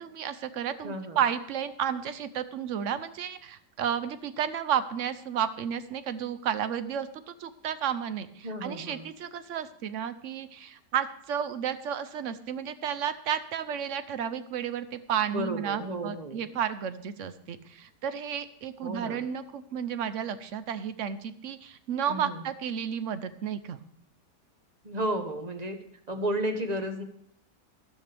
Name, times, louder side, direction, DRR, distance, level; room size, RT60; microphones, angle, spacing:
voice 1, 0.0-23.8, right 8 dB, 60° right, 12 dB, 0.9 m, -32 dB
voice 2, 0.8-1.2 8.4-9.1 15.3-16.5 18.8-19.2 22.1-22.4 24.8-25.8 26.1-27.0, right 1 dB, 30° right, 6 dB, 1.0 m, -32 dB
12.5 x 12.5 x 3.4 m, 0.68 s
omnidirectional pair, 1.9 m